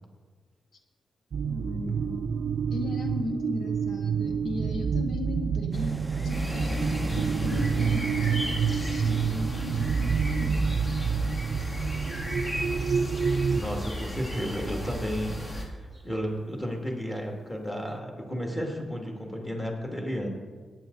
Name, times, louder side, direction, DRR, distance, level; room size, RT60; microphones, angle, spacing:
sound 1, 1.3-13.6, right 6 dB, 65° right, 0.3 m, -28 dB
voice 1, 1.5-2.2 2.7-10.8, left 3 dB, 70° left, 4 dB, 0.9 m, -37 dB
sound 2, 5.7-16.6 17.2-17.5 17.9-18.0, right 1 dB, 10° right, 0.5 m, -41 dB
sound 3, 6.3-15.6, equal, 35° left, 2.3 m, -34 dB
voice 2, 13.5-20.3, equal, 15° left, 0 dB, 2.5 m, -33 dB
18.5 x 9.3 x 4.1 m, 1.5 s
wide cardioid pair, 115°, 0 cm